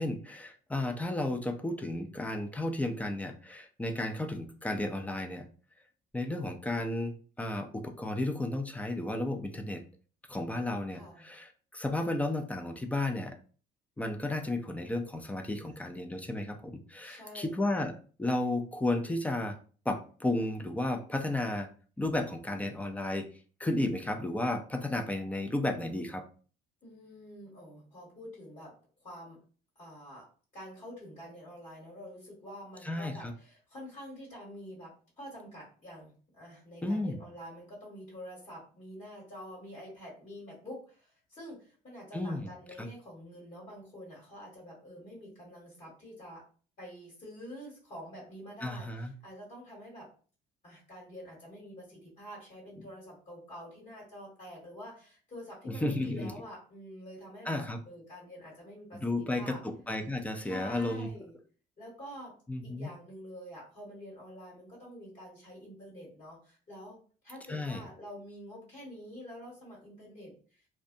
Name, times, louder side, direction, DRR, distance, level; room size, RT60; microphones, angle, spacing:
voice 1, 0.0-5.4 6.1-9.8 10.3-13.4 14.0-17.9 18.2-19.6 19.9-21.7 22.0-23.3 23.6-26.2 32.8-33.3 36.8-37.2 42.1-42.5 42.8-42.9 48.6-49.1 55.7-56.3 57.5-57.8 59.0-61.1 62.5-62.9 67.5-67.8, left 2 dB, 10° left, 5 dB, 0.4 m, -33 dB
voice 2, 10.9-11.3 15.5-16.0 17.0-17.6 26.8-28.7 29.0-29.4 29.7-30.2 30.5-46.4 46.8-50.1 50.6-59.6 60.4-61.3 61.8-62.3 62.6-67.0 67.2-70.7, equal, 40° left, -4 dB, 1.2 m, -47 dB
2.6 x 2.2 x 2.5 m, 0.39 s
cardioid pair, 110°, 17 cm